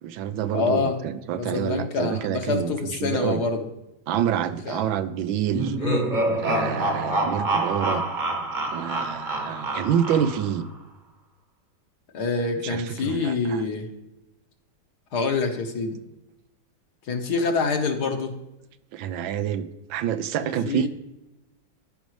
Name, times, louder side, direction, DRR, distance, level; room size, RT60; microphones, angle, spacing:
voice 1, 0.0-2.7 3.0-3.4 4.1-5.7 6.4-8.0 8.7-10.7 12.6-13.6 18.9-20.9, right 9 dB, 85° right, 12 dB, 1.4 m, -27 dB
voice 2, 0.5-1.0 1.4-3.7 4.6-4.8 5.8-6.1 12.1-13.9 15.1-16.0 17.1-18.3 20.4-20.9, left 4 dB, 60° left, 4 dB, 1.5 m, -26 dB
Evil laugh, 5.5-10.6, right 2 dB, 30° right, 1.0 m, -27 dB
14.5 x 5.3 x 3.1 m, 0.95 s
omnidirectional pair, 2.1 m